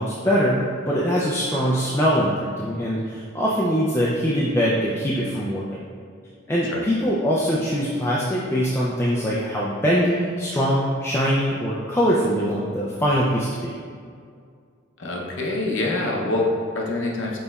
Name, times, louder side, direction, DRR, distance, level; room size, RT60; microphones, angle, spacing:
voice 1, 0.0-5.7 6.5-13.7, equal, 10° left, -6 dB, 0.3 m, -22 dB
voice 2, 15.0-17.4, left 2 dB, 65° left, -1 dB, 0.7 m, -25 dB
5.3 x 4.0 x 2.3 m, 2.2 s
head